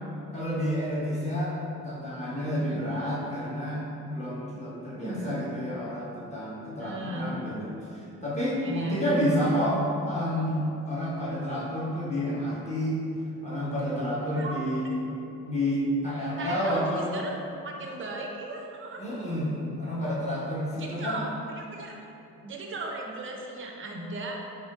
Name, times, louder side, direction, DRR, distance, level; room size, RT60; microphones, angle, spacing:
voice 1, 0.3-1.6 1.8-9.8 10.1-13.0 13.4-15.0 15.4-17.1 19.0-21.2, equal, 15° left, -8 dB, 1.3 m, -30 dB
voice 2, 4.9-5.3 6.8-7.4 8.6-9.4 14.3-14.6 16.4-17.3 17.6-19.0 20.7-21.9 22.4-24.4, right 2 dB, 25° right, 0 dB, 0.6 m, -37 dB
4.2 x 3.7 x 2.4 m, 2.8 s
figure-of-eight pair, 45°, 45 cm